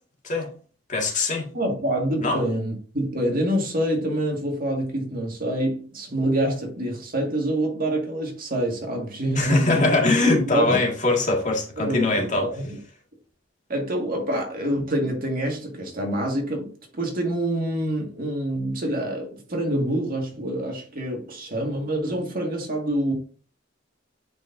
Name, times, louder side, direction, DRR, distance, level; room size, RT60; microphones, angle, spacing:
voice 1, 0.9-1.5 2.2-2.4 9.3-12.5, left 2 dB, 40° left, 1.9 m, -22 dB
voice 2, 1.5-10.0 10.5-10.8 11.8-12.8 13.7-23.1, right 1 dB, 50° right, 2.0 m, -26 dB
9.3 x 4.6 x 2.7 m
head